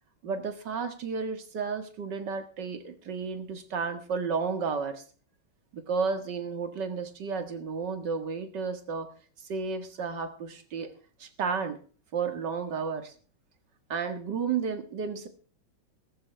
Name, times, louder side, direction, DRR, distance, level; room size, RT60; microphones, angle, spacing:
voice 1, 0.2-5.0 5.7-9.1 9.4-10.9 11.2-11.8 12.1-13.1 13.9-15.3, right 5 dB, 55° right, 7 dB, 2.2 m, -32 dB
15.0 x 14.5 x 3.3 m, 0.40 s
omnidirectional pair, 2.4 m